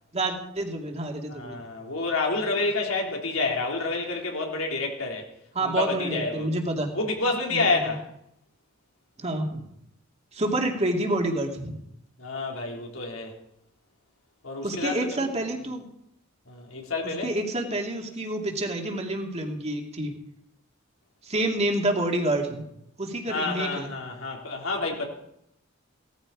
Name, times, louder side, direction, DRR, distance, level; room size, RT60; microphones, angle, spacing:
voice 1, 0.1-1.6 5.5-6.9 7.5-7.9 9.2-9.6 10.3-11.8 14.6-15.9 17.2-20.1 21.2-22.6 23.0-23.9, right 1 dB, 30° right, 2 dB, 2.5 m, -28 dB
voice 2, 1.3-5.3 5.6-6.5 6.9-8.1 12.2-13.3 14.4-15.3 16.5-17.3 23.3-25.1, left 3 dB, 80° left, 0 dB, 3.8 m, -29 dB
17.5 x 14.0 x 4.9 m, 0.78 s
head